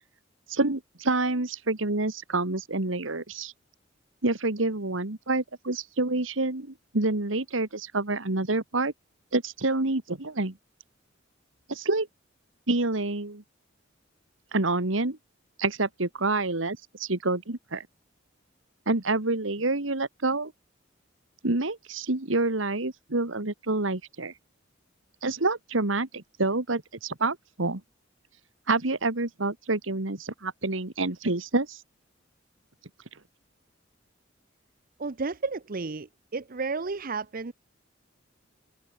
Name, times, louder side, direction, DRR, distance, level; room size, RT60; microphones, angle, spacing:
voice 1, 0.5-3.5 4.2-8.9 9.3-10.6 11.7-12.1 12.7-13.4 14.5-15.2 15.6-17.9 18.9-20.5 21.4-24.3 25.2-27.8 28.7-31.8, right 2 dB, 90° right, 2.0 m, -27 dB
voice 2, 35.0-37.5, right 4 dB, 50° right, 0.8 m, -32 dB
head